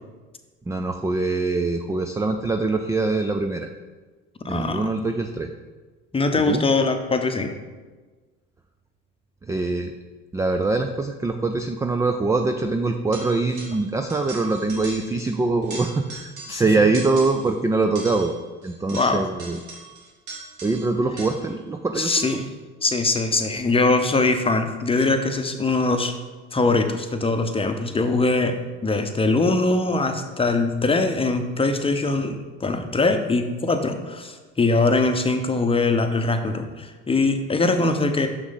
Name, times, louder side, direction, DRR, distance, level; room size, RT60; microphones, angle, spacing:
voice 1, 0.7-3.7 4.5-5.5 6.5-6.6 9.4-9.9 10.3-18.3 18.6-19.6 20.6-22.2, right 3 dB, 10° right, 6 dB, 0.3 m, -23 dB
voice 2, 4.4-4.8 6.1-7.5 16.5-16.6 18.9-19.2 22.0-22.5 22.8-26.1 26.5-28.6 28.8-38.3, left 3 dB, 15° left, 6 dB, 0.8 m, -22 dB
sound 1, 13.1-13.8 14.1-15.3 15.6-16.6 16.9-17.5 18.0-21.6 22.1-22.5, right 4 dB, 65° right, 1.8 m, -40 dB
6.2 x 6.2 x 3.9 m, 1.3 s
hypercardioid pair, 75°, 33 cm